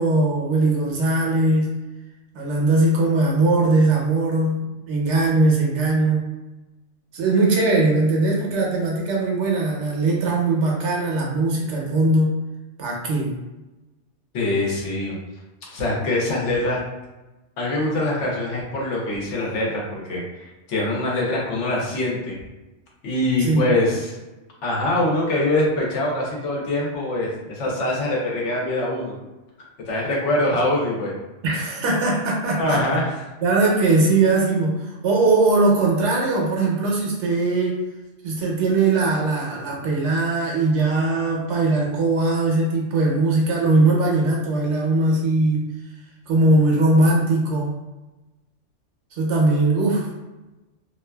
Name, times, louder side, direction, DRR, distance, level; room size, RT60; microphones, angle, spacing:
voice 1, 0.0-1.7 2.3-6.2 7.1-12.4 12.8-13.3 23.4-23.6 31.4-32.8 33.4-37.8 38.2-45.7 46.3-47.7 49.1-50.1, right 2 dB, 75° right, -2 dB, 0.9 m, -20 dB
voice 2, 14.3-15.1 15.7-16.8 17.6-22.4 23.0-24.1 24.6-29.1 29.9-31.1 32.6-33.0, left 1 dB, 75° left, -3 dB, 1.0 m, -23 dB
2.6 x 2.3 x 2.2 m, 1.1 s
omnidirectional pair, 1.3 m